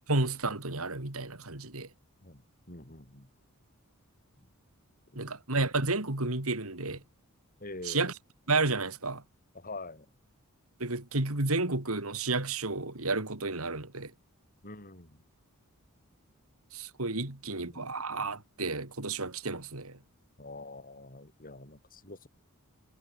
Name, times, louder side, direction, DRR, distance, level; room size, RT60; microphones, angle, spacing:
voice 1, 0.1-1.9 5.1-7.0 7.8-8.1 8.5-9.2 10.8-14.1 16.7-20.0, right 3 dB, 75° right, 3.2 m, -31 dB
voice 2, 2.2-3.3 4.4-4.5 5.1-5.2 7.6-8.1 9.5-10.1 14.6-15.2 17.6-17.9 20.4-22.3, left 2 dB, 40° left, 5.3 m, -46 dB
head